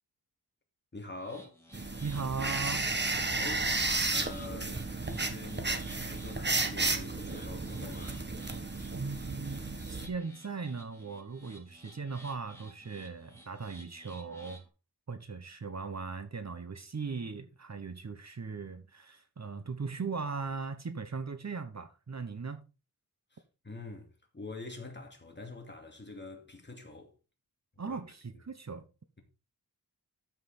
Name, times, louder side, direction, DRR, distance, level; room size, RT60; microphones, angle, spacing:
voice 1, 0.9-1.6 3.3-3.7 4.1-8.3 23.3-24.1 24.3-27.1 27.9-28.0, left 2 dB, 30° left, 2.6 m, -45 dB
sound 1, 1.1-14.7, equal, 5° left, 2.8 m, -55 dB
sound 2, 1.7-10.1, right 3 dB, 25° right, 1.6 m, -33 dB
voice 2, 2.0-2.9 8.9-14.6 15.1-22.6 27.8-28.9, right 4 dB, 45° right, 1.2 m, -38 dB
13.0 x 5.9 x 4.4 m
wide cardioid pair, 110°, 39 cm